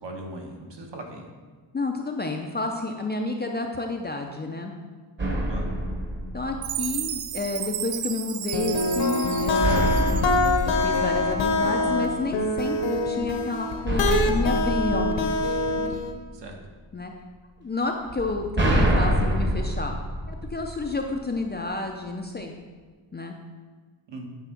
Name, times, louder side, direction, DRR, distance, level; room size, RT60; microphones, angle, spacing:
voice 1, 0.0-1.3 5.5-5.7 16.3-16.6 24.1-24.3, right 2 dB, 60° right, 2 dB, 1.4 m, -39 dB
voice 2, 1.7-4.7 6.3-10.3 10.6-15.6 16.9-17.1 17.6-20.0 20.3-22.5 23.1-23.4, left 3 dB, 20° left, 2 dB, 0.5 m, -30 dB
sound 1, 5.2-7.1 9.6-12.0 13.9-16.1 18.1-21.1, right 1 dB, 20° right, 1.1 m, -26 dB
Chime, 6.6-10.9, right 12 dB, 85° right, 0.6 m, -34 dB
sound 2, 8.5-16.1, left 2 dB, 60° left, 1.0 m, -25 dB
9.1 x 3.6 x 5.8 m, 1.4 s
wide cardioid pair, 130°, 49 cm